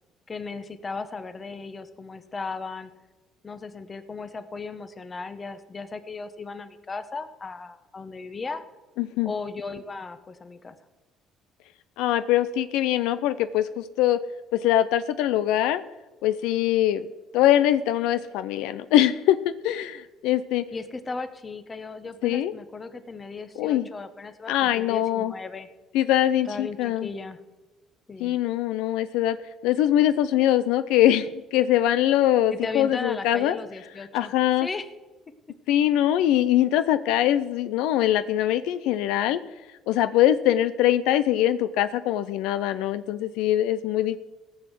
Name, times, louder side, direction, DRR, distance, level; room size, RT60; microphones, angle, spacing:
voice 1, 0.3-2.9 3.4-8.6 9.2-10.7 20.7-25.7 26.5-27.4 28.1-28.4 32.5-34.3 34.6-34.9, left 4 dB, 30° left, 11 dB, 1.1 m, -36 dB
voice 2, 9.0-9.3 12.0-14.2 14.5-15.8 16.2-17.1 17.3-20.6 22.2-22.5 23.6-23.9 24.5-25.3 25.9-27.1 28.2-29.4 29.6-33.6 34.1-34.7 35.7-39.4 39.9-44.2, left 12 dB, 85° left, 13 dB, 0.4 m, -22 dB
16.5 x 6.4 x 7.5 m, 1.2 s
cardioid pair, 95°, 0 cm